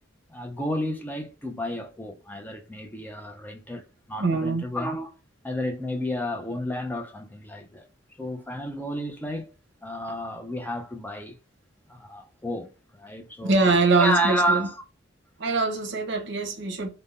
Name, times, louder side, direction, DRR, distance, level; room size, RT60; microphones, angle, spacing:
voice 1, 0.3-5.2 5.4-7.9 8.2-9.5 9.8-11.4 11.9-14.8, equal, 10° left, 0.4 m, -31 dB
voice 2, 4.2-4.6 13.4-14.7 15.4-16.9, right 3 dB, 65° right, 0.8 m, -23 dB
3.5 x 2.0 x 2.3 m
head